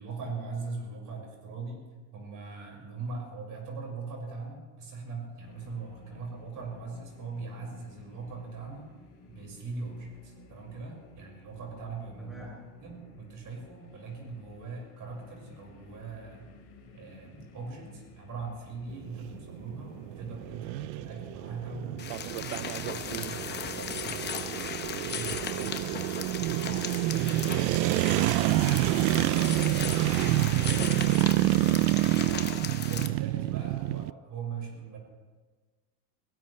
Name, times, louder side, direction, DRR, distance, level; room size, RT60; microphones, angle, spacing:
voice 1, 0.0-1.8 2.1-8.9 9.3-12.4 12.8-16.5 16.9-24.6 25.0-26.2 26.6-27.3 29.7-30.1 31.9-32.3 32.6-35.0, right 4 dB, 40° right, -1 dB, 5.7 m, -41 dB
sound 1, 5.4-24.3, left 3 dB, 50° left, 4.5 m, -54 dB
voice 2, 12.2-12.6 27.1-28.0 29.9-31.3, equal, ahead, -4 dB, 3.9 m, -47 dB
sound 2, 18.9-34.1, right 18 dB, 80° right, 0.5 m, -28 dB
sound 3, 22.0-33.1, left 7 dB, 20° left, 0.8 m, -37 dB
21.5 x 18.5 x 3.3 m, 1.4 s
cardioid pair, 145°, 48 cm